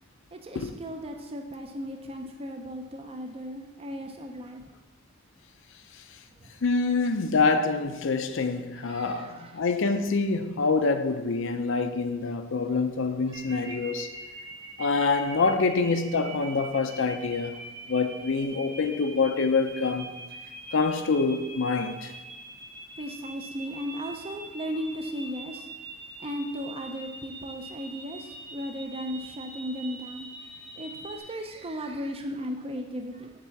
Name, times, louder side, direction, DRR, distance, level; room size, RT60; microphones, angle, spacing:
voice 1, 0.3-4.7 6.4-6.6 8.8-9.6 13.3-13.7 23.0-25.7 26.2-33.3, equal, 30° right, 0.5 m, -36 dB
voice 2, 6.6-14.1 14.8-17.5 17.9-20.1 20.7-22.1, left 4 dB, 65° left, 0.6 m, -26 dB
sound 1, 13.3-31.2, right 3 dB, 60° right, 2.7 m, -43 dB
8.8 x 3.7 x 7.0 m
head